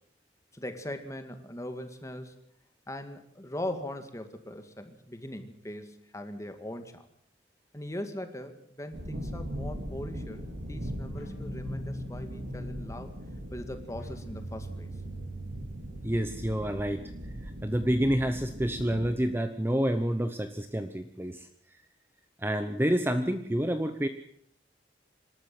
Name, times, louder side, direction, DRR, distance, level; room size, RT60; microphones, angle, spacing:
voice 1, 0.5-2.3 2.9-7.1 7.7-10.4 10.7-13.1 13.5-14.9, left 1 dB, 15° left, 7 dB, 2.1 m, -40 dB
sound 1, 8.9-19.1, equal, 75° right, 3.5 m, -40 dB
sound 2, 11.1-16.7, equal, 85° left, 4.6 m, -42 dB
voice 2, 16.0-17.1 17.4-21.5 22.4-24.1, equal, 10° right, 8 dB, 0.9 m, -28 dB
26.5 x 13.0 x 7.8 m, 0.65 s
head